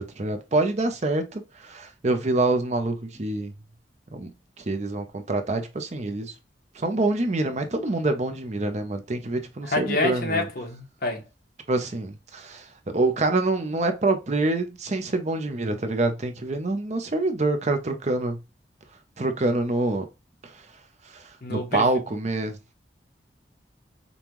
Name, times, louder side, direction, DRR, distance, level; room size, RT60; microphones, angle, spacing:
voice 1, 0.0-3.5 4.1-4.3 4.6-6.3 6.7-10.5 11.7-12.7 12.9-18.4 19.2-20.1 20.4-20.5 21.1-21.2 21.5-22.6, right 2 dB, 40° right, 0.7 m, -26 dB
voice 2, 9.7-11.2 21.4-21.9, left 2 dB, 60° left, 1.2 m, -27 dB
5.3 x 2.4 x 3.0 m
head